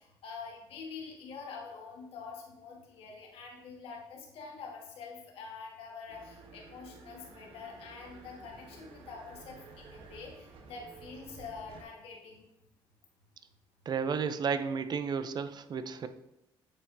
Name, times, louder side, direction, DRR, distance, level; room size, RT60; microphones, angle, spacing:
voice 1, 0.0-12.4, left 5 dB, 75° left, 0 dB, 1.6 m, -46 dB
sound 1, 6.1-11.8, right 4 dB, 70° right, 1.1 m, -52 dB
voice 2, 13.9-16.1, right 6 dB, 45° right, 10 dB, 0.5 m, -32 dB
8.6 x 4.4 x 2.7 m, 0.84 s
cardioid pair, 80°, 10 cm